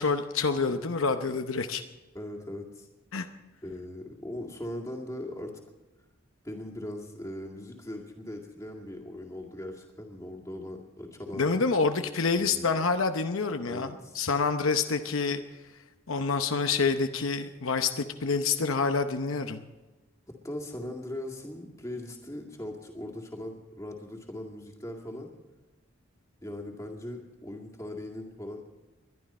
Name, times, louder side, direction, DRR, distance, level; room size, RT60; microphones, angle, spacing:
voice 1, 0.0-1.8 3.1-3.3 11.4-15.4 16.1-19.6, left 4 dB, 70° left, 7 dB, 0.8 m, -27 dB
voice 2, 2.1-2.9 3.6-5.5 6.4-11.5 12.3-12.8 13.7-14.2 20.3-25.3 26.4-28.6, left 1 dB, 15° left, 0 dB, 2.1 m, -39 dB
21.5 x 12.0 x 4.3 m, 1.1 s
head